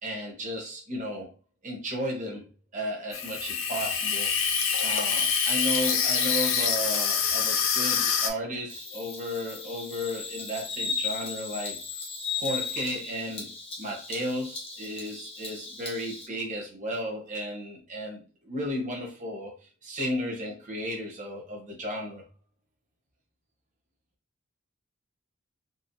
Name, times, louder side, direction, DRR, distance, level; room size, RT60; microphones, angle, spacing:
voice 1, 0.0-1.3 1.6-2.5 2.7-4.3 4.8-11.8 12.3-22.2, equal, 35° right, 0 dB, 1.1 m, -34 dB
Water tap faucet / Sink (filling or washing), 3.1-8.3, left 6 dB, 70° left, 0.6 m, -26 dB
Bird vocalization bird call bird song, 8.7-16.3, left 5 dB, 25° left, 0.8 m, -36 dB
4.0 x 2.3 x 2.7 m, 0.32 s
head